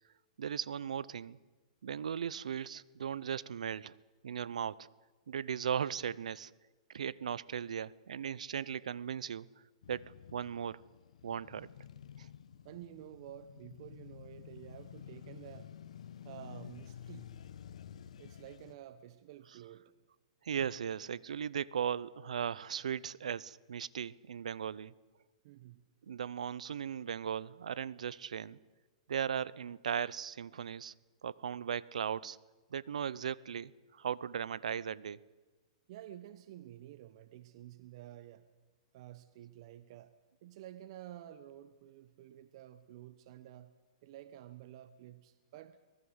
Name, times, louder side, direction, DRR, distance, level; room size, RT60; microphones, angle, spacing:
voice 1, 0.4-1.4 1.8-4.0 4.2-4.9 5.3-6.5 6.9-9.5 9.9-10.8 11.2-11.7 12.2-12.3 19.4-19.6 20.4-24.9 26.0-28.6 29.1-30.9 31.2-32.4 32.7-35.2, right 8 dB, 85° right, 0.8 m, -37 dB
Male speech man speaking / Motorcycle / Idling, 9.8-18.7, left 9 dB, 75° left, 1.2 m, -51 dB
voice 2, 12.6-15.7 16.2-17.3 18.2-19.9 25.4-25.9 35.9-38.5 38.9-40.1 40.4-43.7 44.0-45.8, right 12 dB, 50° right, 1.1 m, -51 dB
24.5 x 19.5 x 8.1 m
hypercardioid pair, 140°, 4 cm